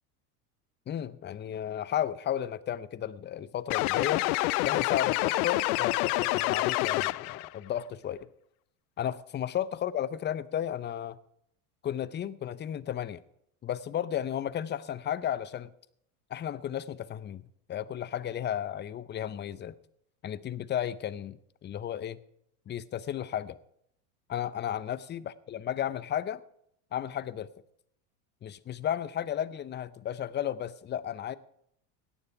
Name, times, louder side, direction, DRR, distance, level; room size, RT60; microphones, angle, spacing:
voice 1, 0.9-4.2 4.6-8.2 9.0-11.2 11.8-13.2 13.6-15.7 16.3-17.4 17.7-19.7 20.2-22.2 22.7-23.6 24.3-26.4 26.9-27.5 28.4-31.3, left 10 dB, 25° left, 17 dB, 0.6 m, -33 dB
sound 1, 3.7-7.5, left 21 dB, 70° left, 0.5 m, -27 dB
17.0 x 9.9 x 4.7 m, 0.72 s
supercardioid pair, 105°, 46 cm